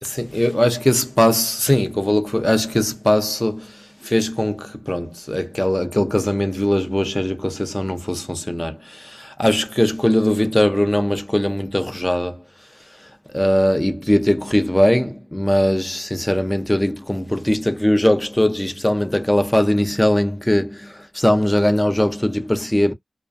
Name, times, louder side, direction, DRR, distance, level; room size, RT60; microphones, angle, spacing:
voice 1, 0.0-12.4 13.3-22.9, left 1 dB, 10° left, 0.5 m, -20 dB
2.4 x 2.2 x 2.4 m
wide cardioid pair, 90°, 0 cm